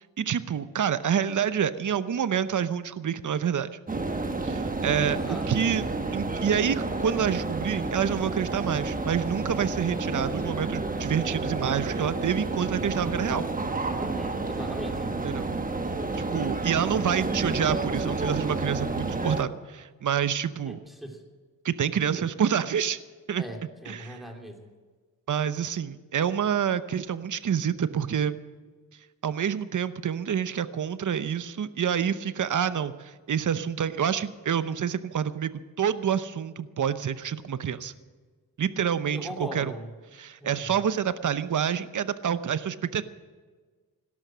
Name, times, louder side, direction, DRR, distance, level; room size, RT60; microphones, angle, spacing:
voice 1, 0.2-3.8 4.4-5.8 6.1-13.4 15.2-15.5 16.3-20.8 21.6-23.0 23.3-23.4 23.9-24.2 25.3-28.4 29.2-35.5 35.8-37.9 38.6-39.7 40.1-43.0, right 8 dB, 60° right, 13 dB, 0.9 m, -27 dB
sound 1, 3.9-19.4, right 3 dB, 25° right, 1.3 m, -30 dB
voice 2, 5.0-5.7 14.0-15.1 20.7-21.2 22.1-22.2 23.4-24.7 39.1-39.9 40.4-40.7, equal, ahead, 2 dB, 3.1 m, -39 dB
17.5 x 12.5 x 6.3 m, 1.4 s
wide cardioid pair, 100°, 35 cm